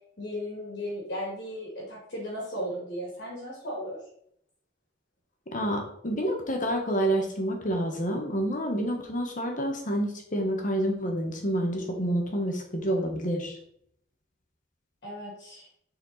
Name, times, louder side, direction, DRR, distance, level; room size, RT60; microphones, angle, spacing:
voice 1, 0.2-4.0 15.0-15.7, equal, 60° left, -4 dB, 2.2 m, -36 dB
voice 2, 5.5-13.6, equal, 45° left, 2 dB, 1.3 m, -28 dB
7.3 x 4.4 x 4.1 m, 0.69 s
head